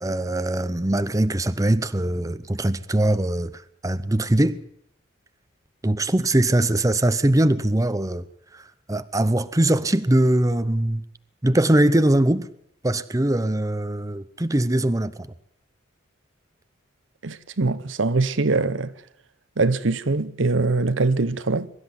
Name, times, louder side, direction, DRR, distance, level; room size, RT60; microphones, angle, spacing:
voice 1, 0.0-4.6 5.8-8.3 8.5-11.0 11.4-12.5 12.8-15.3, right 1 dB, 15° right, 0.8 m, -21 dB
voice 2, 17.2-18.9 19.6-21.7, right 3 dB, 75° right, 1.0 m, -22 dB
23.0 x 13.0 x 9.8 m
head